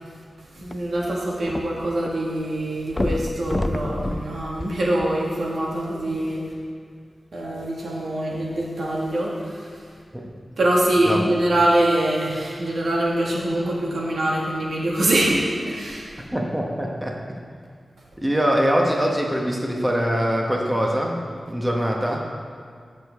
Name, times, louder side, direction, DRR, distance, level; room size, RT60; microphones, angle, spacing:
sound 1, 0.6-2.1 2.4-2.5 2.9-5.5 6.2-6.3, left 1 dB, 25° left, 0.4 m, -28 dB
voice 1, 0.6-6.5 7.3-9.7 10.6-16.1, right 1 dB, 80° right, -3 dB, 1.9 m, -24 dB
voice 2, 16.2-17.4 18.2-21.2 21.5-22.2, equal, 10° right, -1 dB, 1.1 m, -23 dB
15.0 x 6.7 x 3.6 m, 2.1 s
wide cardioid pair, 110°, 0 cm